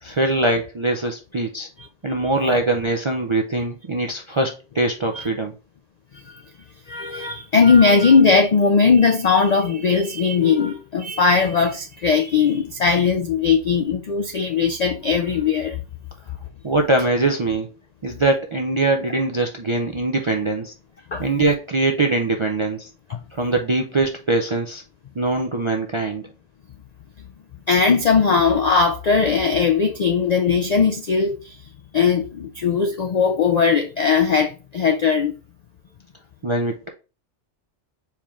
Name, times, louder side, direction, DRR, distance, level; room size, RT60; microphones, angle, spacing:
voice 1, 0.0-1.7 2.0-5.5 16.6-17.7 18.0-20.7 21.2-22.9 23.3-24.8 25.2-26.3 36.4-36.9, right 2 dB, 45° right, 0.3 m, -22 dB
voice 2, 6.9-15.8 21.1-21.2 23.1-23.2 27.7-31.6 31.9-35.4, left 5 dB, 65° left, 0.4 m, -19 dB
4.5 x 3.6 x 3.1 m
omnidirectional pair, 1.2 m